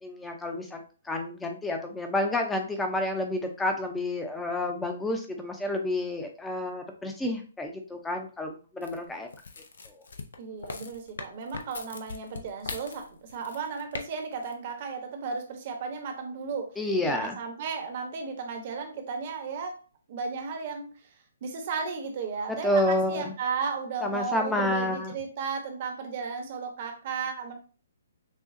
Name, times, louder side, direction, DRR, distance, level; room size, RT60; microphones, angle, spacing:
voice 1, 0.0-9.3 16.8-17.4 22.5-23.3 24.0-25.1, left 1 dB, 10° left, 4 dB, 0.7 m, -29 dB
sound 1, 8.8-14.0 14.3-14.5, left 4 dB, 65° left, 0.6 m, -40 dB
voice 2, 10.4-16.7 17.0-19.7 20.1-20.9 21.4-27.5, right 5 dB, 40° right, 4 dB, 1.0 m, -34 dB
6.4 x 2.3 x 2.6 m, 0.38 s
figure-of-eight pair, 130°, 0 cm